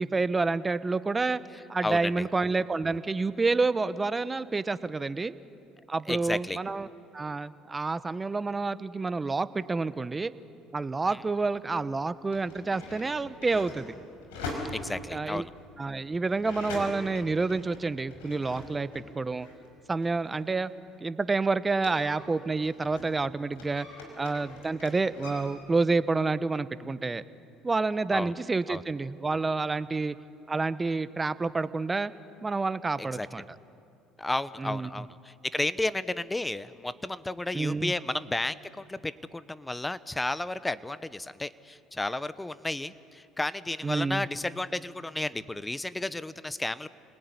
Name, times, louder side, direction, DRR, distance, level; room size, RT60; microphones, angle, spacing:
voice 1, 0.0-1.4 1.7-5.3 5.9-6.9 7.1-10.3 10.7-14.0 15.1-15.5 15.8-18.9 19.1-19.5 19.9-20.7 21.0-23.9 24.2-27.2 27.6-30.2 30.5-32.1 32.4-33.4 34.6-35.0 37.5-37.9 43.8-44.2, right 3 dB, 20° right, 14 dB, 1.0 m, -28 dB
voice 2, 6.1-6.6 14.7-15.5 28.1-28.3 28.7-28.8 33.0-33.3 34.2-46.9, left 2 dB, 10° left, 16 dB, 1.0 m, -32 dB
sound 1, 11.1-11.2 12.1-19.1 19.4-23.2 23.5-25.5, left 2 dB, 90° left, 5.3 m, -42 dB
29.0 x 19.5 x 9.7 m, 2.6 s
supercardioid pair, 75°, 0 cm